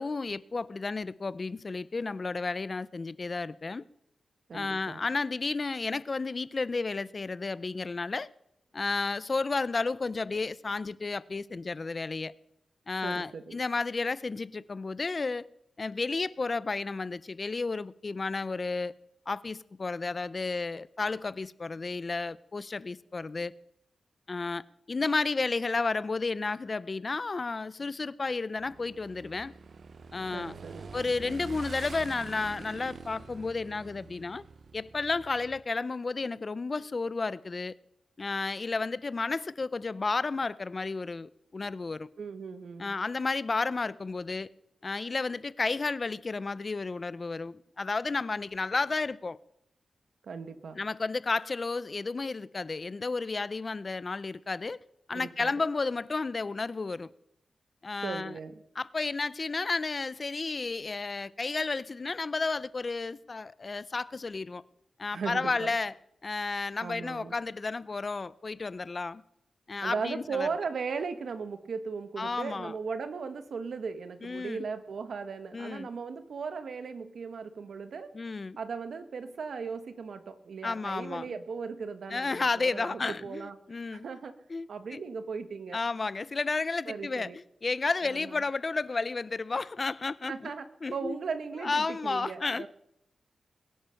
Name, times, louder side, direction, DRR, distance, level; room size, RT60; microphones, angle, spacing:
voice 1, 0.0-3.8 4.5-8.3 8.7-12.3 12.9-15.5 15.8-18.9 19.3-23.5 24.3-29.5 30.1-30.5 30.9-34.4 34.7-37.7 38.2-42.1 42.8-44.5 44.8-49.4 50.8-54.8 55.1-57.1 57.8-58.3 58.8-64.6 65.0-65.9 66.2-69.2 69.7-70.5 72.2-72.7 74.2-74.7 75.5-75.9 78.1-78.6 80.6-81.3 82.1-84.1 84.5-85.0 85.7-90.5 90.8-91.2 91.6-92.7, left 3 dB, 40° left, 0.5 m, -32 dB
voice 2, 4.5-5.0 13.0-13.6 30.3-30.9 42.2-43.0 50.2-50.8 55.1-55.5 58.0-58.6 65.1-65.7 66.8-67.4 69.8-78.1 78.6-83.6 83.9-84.4 84.7-85.8 86.9-87.4 88.0-88.4 90.3-90.6 90.9-92.7, right 5 dB, 70° right, 1.3 m, -37 dB
Motorcycle / Engine, 28.6-35.6, right 4 dB, 55° right, 0.9 m, -46 dB
21.5 x 10.5 x 5.7 m
wide cardioid pair, 105°, 0 cm